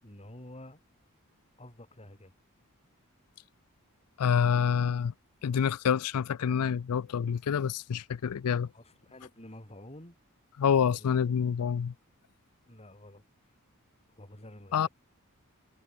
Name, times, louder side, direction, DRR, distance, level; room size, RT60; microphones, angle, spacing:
voice 1, 0.0-0.8 1.6-2.3 8.7-10.2 10.9-11.1 12.7-13.2 14.1-14.9, left 1 dB, 30° left, 6.4 m, -49 dB
voice 2, 4.2-5.1 5.4-8.7 10.6-11.9 14.7-14.9, left 7 dB, 90° left, 0.4 m, -27 dB
head